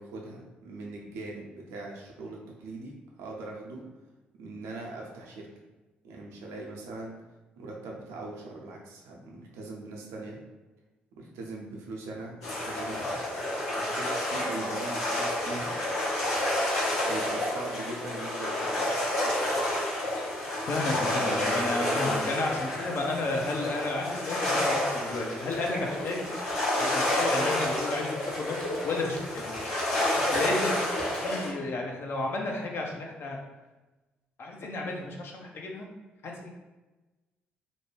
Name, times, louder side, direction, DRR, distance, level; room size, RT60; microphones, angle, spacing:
voice 1, 0.0-3.8 4.4-5.5 6.0-7.2 7.6-10.4 11.1-13.1 13.8-15.7 17.0-18.8 20.9-21.7, right 2 dB, 70° right, -1 dB, 0.5 m, -40 dB
sound 1, 12.4-31.5, left 1 dB, 75° left, 1.1 m, -29 dB
voice 2, 20.7-26.2 26.8-28.6 28.8-29.6 30.0-30.7 31.1-33.4 34.4-35.9 36.2-36.5, left 2 dB, 50° left, 0 dB, 0.5 m, -32 dB
sound 2, 25.5-31.4, equal, 20° left, 0.8 m, -48 dB
2.6 x 2.1 x 3.2 m, 1.1 s
figure-of-eight pair, 45°, 5 cm